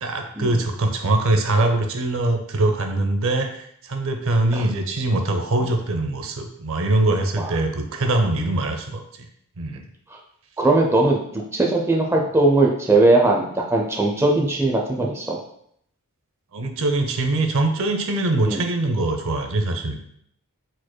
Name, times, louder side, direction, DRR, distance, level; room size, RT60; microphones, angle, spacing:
voice 1, 0.0-9.3 9.6-9.8 16.5-20.1, right 2 dB, 65° right, 5 dB, 0.6 m, -23 dB
voice 2, 10.6-11.2 11.5-15.4 18.4-18.7, right 2 dB, 10° right, -1 dB, 0.5 m, -19 dB
4.5 x 4.5 x 2.2 m, 0.70 s
head